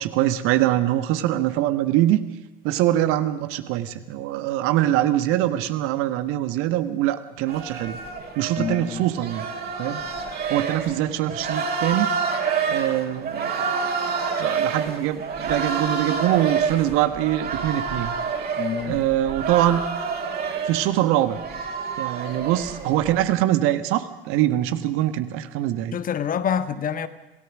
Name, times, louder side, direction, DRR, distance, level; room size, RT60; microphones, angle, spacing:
voice 1, 0.0-2.2 2.6-8.0 8.4-9.5 9.8-10.0 10.5-12.1 12.7-13.7 14.4-18.1 18.9-19.8 20.7-21.4 22.0-26.0, right 13 dB, 50° right, 1.6 m, -23 dB
sound 1, 7.5-23.2, right 5 dB, 35° right, 4.0 m, -28 dB
voice 2, 8.6-9.1 18.6-19.0 25.9-27.1, left 8 dB, 30° left, 1.3 m, -27 dB
27.0 x 17.5 x 6.3 m
figure-of-eight pair, 75°, 29 cm